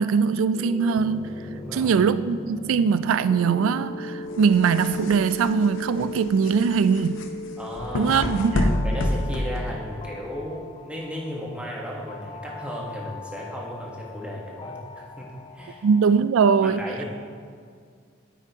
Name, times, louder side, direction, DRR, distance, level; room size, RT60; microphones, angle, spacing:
voice 1, 0.0-1.3 1.7-7.2 7.9-8.7 15.8-16.8, right 6 dB, 80° right, 0.3 m, -21 dB
sound 1, 0.5-16.1, left 2 dB, 20° left, 0.4 m, -39 dB
voice 2, 1.5-1.9 7.6-8.1 8.8-15.8 16.6-17.0, equal, 5° right, 1.2 m, -35 dB
sound 2, 4.3-10.2, left 1 dB, 70° left, 0.7 m, -28 dB
9.3 x 8.8 x 2.8 m
head